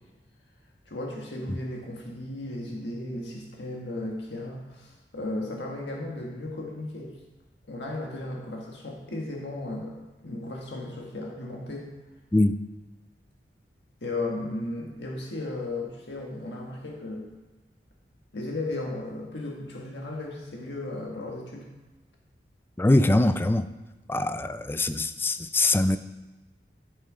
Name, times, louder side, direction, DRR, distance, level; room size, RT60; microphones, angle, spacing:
voice 1, 0.8-7.1 7.7-10.0 10.2-11.9 14.0-17.3 18.3-21.7, left 2 dB, 75° left, -1 dB, 1.6 m, -35 dB
voice 2, 22.8-23.7 24.1-26.0, left 2 dB, 15° left, 11 dB, 0.4 m, -22 dB
12.0 x 6.8 x 4.9 m, 1.1 s
head